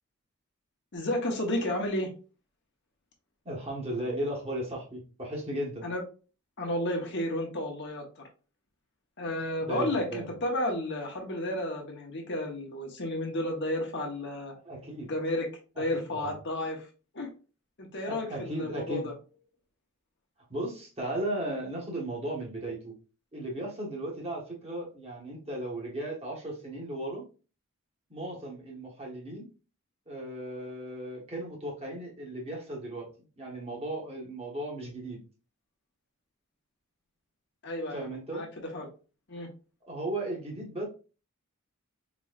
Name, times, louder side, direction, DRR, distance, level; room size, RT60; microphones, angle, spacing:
voice 1, 0.9-2.1 5.8-6.0 6.6-8.2 9.2-14.5 15.1-15.5 15.8-16.9 17.1-17.3 17.8-19.1 37.6-38.9 39.3-39.5, left 1 dB, 55° left, 2 dB, 0.9 m, -32 dB
voice 2, 3.4-5.9 9.6-10.3 14.6-15.1 15.8-16.3 18.1-19.1 20.5-22.9 23.3-27.3 28.1-29.5 30.1-33.1 33.4-35.2 37.9-38.4 39.8-40.9, right 1 dB, 30° right, -2 dB, 1.2 m, -36 dB
4.1 x 3.0 x 2.4 m, 0.35 s
head